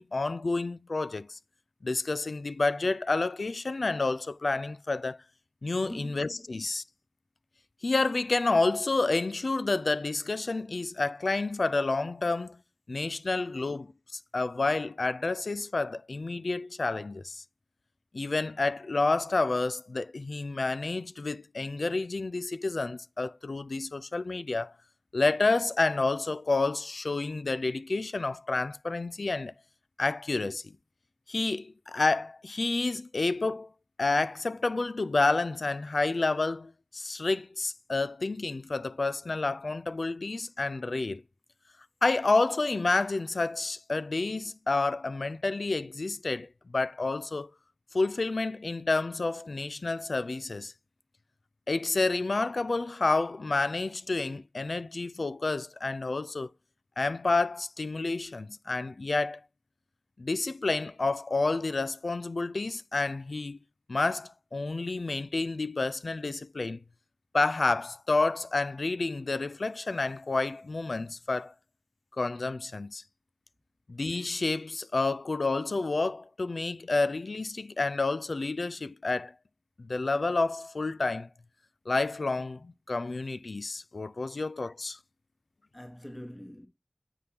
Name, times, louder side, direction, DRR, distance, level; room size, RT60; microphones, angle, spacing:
voice 1, 0.0-1.4 1.8-5.2 5.6-6.8 7.8-12.6 12.9-17.4 18.1-24.7 25.1-29.5 30.0-30.6 31.3-33.7 34.0-41.2 42.0-47.5 47.9-50.7 51.7-56.5 57.0-59.4 60.2-63.6 63.9-66.8 67.3-71.5 72.2-73.0 73.9-79.3 79.8-81.3 81.9-85.0, left 3 dB, 85° left, 0.3 m, -29 dB
voice 2, 5.8-6.4 85.7-86.7, equal, 30° left, 1.3 m, -43 dB
9.4 x 3.5 x 2.8 m
wide cardioid pair, 45°, 0 cm